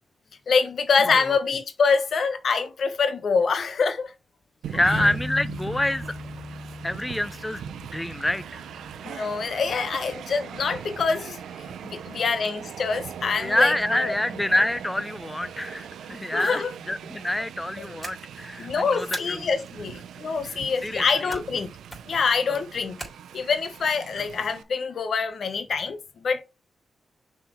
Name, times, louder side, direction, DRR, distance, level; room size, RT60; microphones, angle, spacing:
voice 1, 0.5-4.1 9.0-14.1 16.3-16.7 18.6-21.7 22.1-23.0 23.3-26.4, left 5 dB, 70° left, 1.1 m, -25 dB
Train, 4.6-24.6, right 9 dB, 90° right, 0.6 m, -40 dB
voice 2, 4.7-6.1 6.8-7.7 7.9-8.6 13.4-19.4 20.4-21.4 22.5-22.6, left 1 dB, 15° left, 0.4 m, -27 dB
sound 1, 4.8-11.9, left 2 dB, 35° left, 0.9 m, -39 dB
sound 2, 18.0-18.6 19.1-19.7 21.3-21.6 21.9-22.3 23.0-23.7, right 1 dB, 10° right, 3.1 m, -39 dB
6.2 x 4.3 x 4.4 m
cardioid pair, 55°, 0 cm